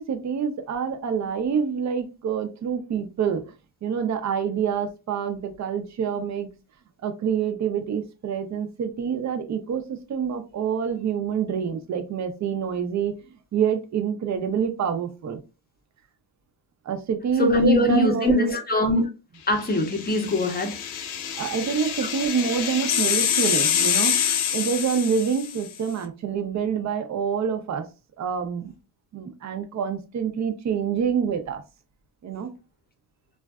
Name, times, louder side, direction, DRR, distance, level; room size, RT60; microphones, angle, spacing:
voice 1, 0.0-3.4 3.8-6.5 7.0-13.1 13.5-15.4 16.9-18.6 21.4-24.1 24.5-27.9 28.2-28.7 29.1-31.6 32.2-32.5, right 7 dB, 35° right, 0.5 m, -26 dB
voice 2, 17.4-19.0 19.5-20.8, left 1 dB, 20° left, 0.7 m, -22 dB
sound 1, 19.8-25.7, left 8 dB, 80° left, 0.6 m, -26 dB
2.5 x 2.2 x 2.2 m
cardioid pair, 90°, 48 cm